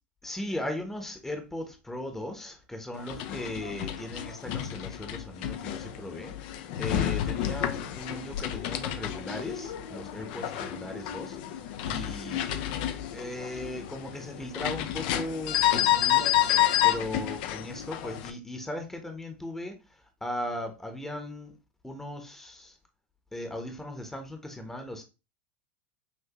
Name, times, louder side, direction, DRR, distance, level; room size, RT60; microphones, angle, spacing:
voice 1, 0.2-6.3 6.8-11.4 11.8-12.7 13.1-16.3 16.8-21.5 21.8-22.8 23.3-25.0, left 1 dB, 5° left, 0.9 m, -38 dB
sound 1, 3.0-18.3, left 12 dB, 60° left, 0.5 m, -30 dB
5.9 x 2.6 x 2.9 m
hypercardioid pair, 85°, 6 cm